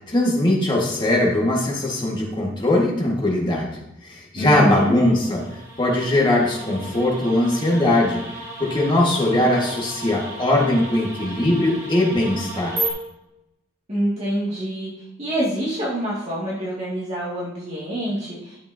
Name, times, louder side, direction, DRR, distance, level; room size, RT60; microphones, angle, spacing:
voice 1, 0.1-8.2 8.6-12.8, left 1 dB, 25° left, -2 dB, 1.7 m, -20 dB
voice 2, 4.4-4.9 13.9-14.9 15.2-18.6, equal, 35° right, -7 dB, 2.2 m, -26 dB
sound 1, 4.8-12.9, right 1 dB, 15° right, 2.5 m, -34 dB
11.0 x 6.9 x 2.8 m, 0.89 s
head